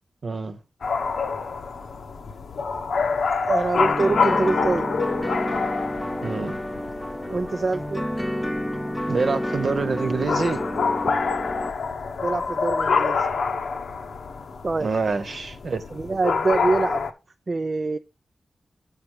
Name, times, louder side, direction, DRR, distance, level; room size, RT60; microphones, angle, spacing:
voice 1, 0.2-0.6 6.2-6.6 9.1-10.6 14.8-15.8, right 4 dB, 65° right, 1.1 m, -26 dB
sound 1, 0.8-17.1, left 5 dB, 85° left, 0.8 m, -27 dB
voice 2, 3.4-4.9 7.3-8.0 12.2-13.3 14.6-14.9 15.9-17.1 17.5-18.0, right 3 dB, 45° right, 0.4 m, -25 dB
sound 2, 3.7-11.7, equal, 5° left, 0.7 m, -30 dB
6.9 x 5.8 x 4.8 m
wide cardioid pair, 80°, 0 cm